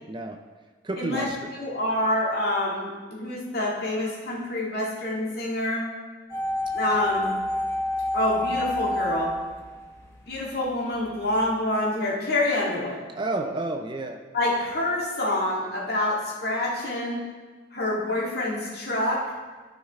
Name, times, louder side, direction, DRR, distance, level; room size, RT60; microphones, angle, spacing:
voice 1, 0.1-0.4 0.8-1.5 6.9-7.4 13.1-14.2, right 2 dB, 25° right, 5 dB, 0.4 m, -31 dB
voice 2, 1.0-1.3 1.6-5.9 6.7-7.3 8.1-9.3 10.3-13.0 14.3-17.2 17.7-19.2, left 1 dB, 55° left, -4 dB, 2.1 m, -27 dB
sound 1, 6.3-10.4 10.7-10.8, left 2 dB, 15° left, 0.9 m, -28 dB
13.5 x 5.4 x 3.5 m, 1.3 s
head